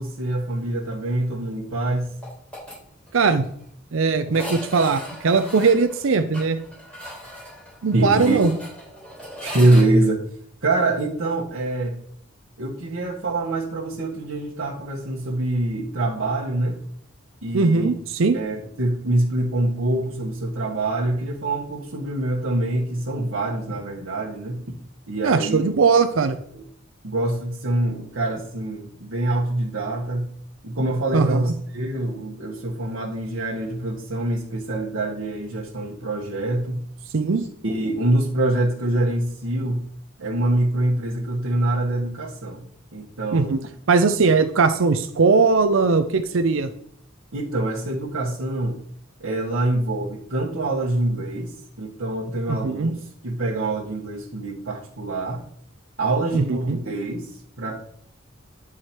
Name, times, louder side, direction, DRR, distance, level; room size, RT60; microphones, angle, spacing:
voice 1, 0.0-2.2 7.9-8.4 9.4-10.2 10.6-12.0 12.6-16.8 17.4-17.9 18.3-24.6 25.1-25.6 26.5-26.6 27.0-30.3 30.6-36.8 37.4-39.8 40.2-42.6 42.9-43.5 47.3-48.8 49.2-55.4 56.0-57.8, right 2 dB, 90° right, -5 dB, 1.2 m, -25 dB
sound 1, 2.2-2.8 3.1-3.2 3.4-3.5 4.3-9.9, equal, 5° left, 3.6 m, -38 dB
voice 2, 3.1-3.5 3.9-6.6 7.8-8.5 17.5-18.4 25.2-26.4 31.1-31.4 37.1-37.5 43.3-43.6 43.9-46.7 52.5-52.9 56.3-56.8, right 4 dB, 70° right, 9 dB, 0.5 m, -19 dB
9.8 x 4.8 x 4.4 m, 0.66 s
head